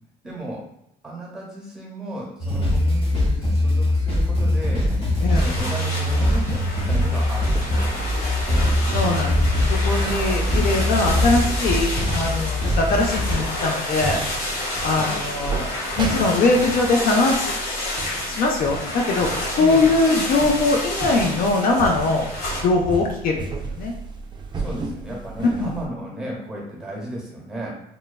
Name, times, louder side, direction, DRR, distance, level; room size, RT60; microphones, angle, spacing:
voice 1, 0.2-0.7 1.0-4.9 5.4-8.7 10.5-11.1 14.9-15.2 19.6-19.9 24.5-27.7, right 1 dB, 5° right, -3 dB, 1.1 m, -34 dB
sound 1, 2.4-13.4, left 1 dB, 35° left, 1.1 m, -22 dB
sound 2, 5.3-22.6, left 1 dB, 80° left, 1.2 m, -30 dB
sound 3, 7.1-25.9, right 2 dB, 25° right, 0.4 m, -33 dB
voice 2, 8.9-9.4 9.7-14.2 14.8-22.3 22.6-23.9 25.6-25.7, left 3 dB, 55° left, 1 dB, 0.4 m, -22 dB
3.0 x 2.2 x 2.3 m, 0.80 s
cardioid pair, 110°, 17 cm